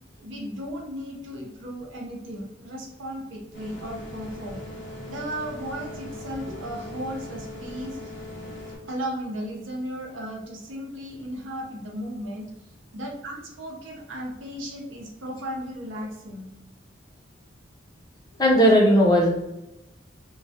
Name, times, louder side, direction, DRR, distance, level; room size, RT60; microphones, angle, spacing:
voice 1, 0.2-4.6 5.1-8.1 8.9-16.5, equal, 80° right, -1 dB, 0.6 m, -35 dB
sound 1, 3.5-8.8, left 1 dB, 70° left, 0.9 m, -39 dB
voice 2, 18.4-19.3, equal, 20° left, -2 dB, 0.5 m, -16 dB
2.3 x 2.0 x 2.7 m, 0.93 s
head